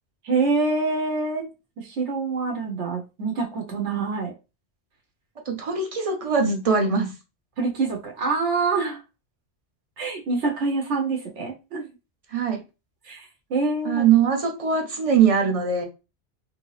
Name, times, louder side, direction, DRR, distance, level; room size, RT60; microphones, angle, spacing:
voice 1, 0.2-1.5 1.8-4.3 7.6-9.0 10.0-11.9 13.0-14.0, right 3 dB, 80° right, 1.1 m, -26 dB
voice 2, 5.5-7.1 12.3-12.6 13.8-15.8, right 6 dB, 40° right, 0.5 m, -21 dB
3.2 x 2.7 x 3.1 m
omnidirectional pair, 1.2 m